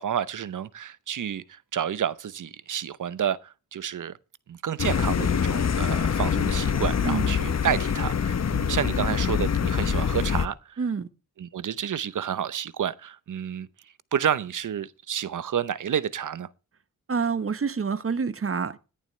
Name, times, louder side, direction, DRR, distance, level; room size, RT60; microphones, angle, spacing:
voice 1, 0.0-4.2 4.5-10.8 11.4-13.7 14.1-16.5, right 9 dB, 60° right, 0.8 m, -30 dB
sound 1, 4.8-10.5, left 7 dB, 50° left, 0.9 m, -25 dB
voice 2, 10.8-11.1 17.1-18.8, right 5 dB, 40° right, 1.0 m, -27 dB
17.0 x 11.0 x 3.2 m
cardioid pair, 65°, 35 cm